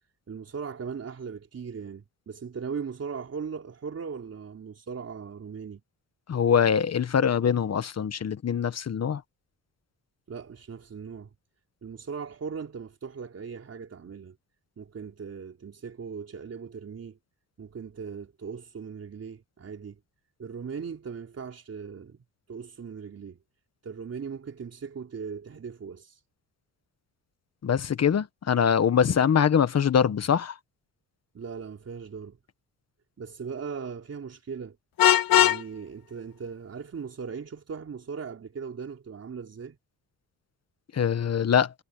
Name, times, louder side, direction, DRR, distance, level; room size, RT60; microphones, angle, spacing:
voice 1, 0.3-5.8 10.3-11.3 11.8-14.4 14.8-17.2 17.6-20.0 20.4-22.2 22.5-23.4 23.8-26.2 31.3-32.4 33.2-34.8 35.3-39.8, right 6 dB, 40° right, 4.1 m, -38 dB
voice 2, 6.3-9.2 27.6-30.6 40.9-41.7, left 7 dB, 45° left, 1.3 m, -23 dB
Vehicle horn car horn honking, 35.0-35.6, left 12 dB, 70° left, 1.7 m, -19 dB
cardioid pair, 110°, 36 cm